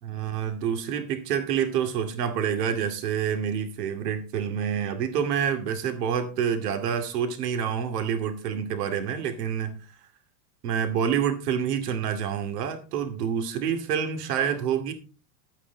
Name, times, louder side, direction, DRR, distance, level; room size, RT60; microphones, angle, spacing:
voice 1, 0.0-9.8 10.6-14.9, right 8 dB, 85° right, 7 dB, 2.5 m, -27 dB
11.5 x 9.1 x 4.0 m, 0.32 s
supercardioid pair, 175°, 46 cm